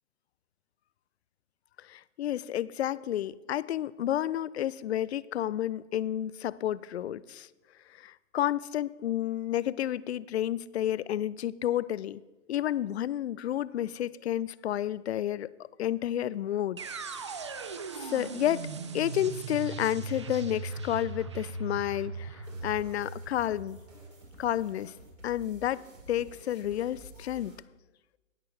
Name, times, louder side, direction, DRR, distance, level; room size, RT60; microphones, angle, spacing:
voice 1, 1.8-7.5 8.0-12.2 12.5-15.5 15.8-16.8 18.0-18.7 18.9-23.8 24.4-24.9 25.2-25.8 26.1-27.5, left 12 dB, 55° left, 20 dB, 0.4 m, -31 dB
sound 1, 16.8-24.7, right 4 dB, 25° right, 0.3 m, -39 dB
sound 2, 22.4-27.6, right 1 dB, 85° right, 4.2 m, -51 dB
18.5 x 6.8 x 3.3 m, 1.1 s
hypercardioid pair, 135°, 38 cm